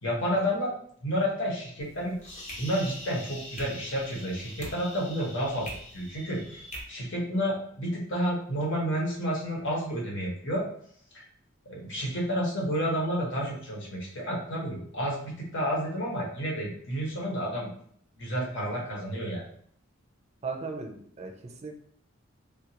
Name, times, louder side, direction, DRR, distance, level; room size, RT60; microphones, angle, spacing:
voice 1, 0.0-0.7 1.0-2.2 2.6-6.6 6.9-10.6 11.6-17.7 18.2-19.4, equal, 60° left, -3 dB, 1.2 m, -30 dB
sound 1, 1.8-6.8, left 1 dB, 35° left, 0.9 m, -43 dB
voice 2, 20.4-21.8, right 4 dB, 30° right, 2 dB, 0.5 m, -37 dB
3.6 x 2.4 x 2.9 m, 0.62 s
head